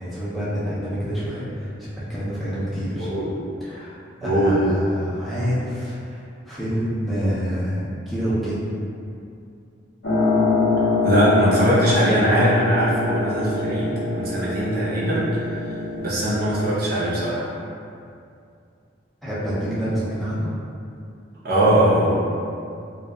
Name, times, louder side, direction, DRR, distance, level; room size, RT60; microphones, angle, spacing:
voice 1, 0.0-3.1 3.6-8.7 19.2-20.5, equal, ahead, -11 dB, 0.5 m, -27 dB
voice 2, 3.0-3.3 4.2-4.6 11.0-15.4 16.0-17.5 21.4-22.2, right 1 dB, 55° right, -7 dB, 0.6 m, -20 dB
sound 1, 10.0-16.6, left 3 dB, 70° left, 0.6 m, -24 dB
2.7 x 2.2 x 2.2 m, 2.4 s
head